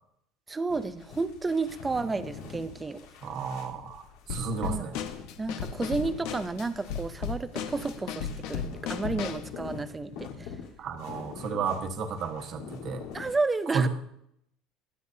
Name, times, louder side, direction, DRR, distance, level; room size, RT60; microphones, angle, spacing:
voice 1, 0.5-3.0 4.6-4.9 5.4-8.6 8.9-10.6 13.1-13.9, right 3 dB, 10° right, 11 dB, 0.5 m, -31 dB
sound 1, 0.7-13.4, left 6 dB, 90° left, 3.4 m, -45 dB
voice 2, 3.2-4.0 4.3-5.0 10.8-13.0 13.7-13.9, right 5 dB, 35° right, 5 dB, 1.3 m, -32 dB
Drum kit / Snare drum, 4.3-9.5, left 7 dB, 60° left, 1.0 m, -35 dB
21.0 x 9.6 x 2.7 m, 0.72 s
cardioid pair, 175°, 0 cm